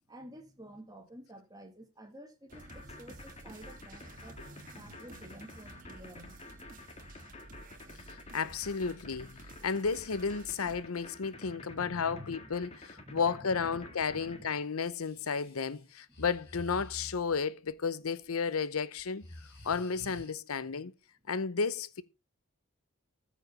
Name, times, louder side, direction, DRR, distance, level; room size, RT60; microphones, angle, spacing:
voice 1, 0.1-4.4 4.7-6.4 7.8-8.0 11.3-12.5 13.0-13.5 13.8-14.5, equal, 20° right, 2.1 m, -51 dB
sound 1, 2.5-14.4, left 2 dB, 30° left, 1.8 m, -50 dB
sound 2, 2.5-10.8, right 2 dB, 40° right, 1.6 m, -52 dB
voice 2, 8.3-19.3 19.6-20.9 21.3-22.0, left 5 dB, 90° left, 0.7 m, -33 dB
Breathing, 15.0-17.4 18.3-18.6 19.0-20.3, left 1 dB, 50° left, 4.3 m, -49 dB
14.0 x 5.1 x 5.4 m
head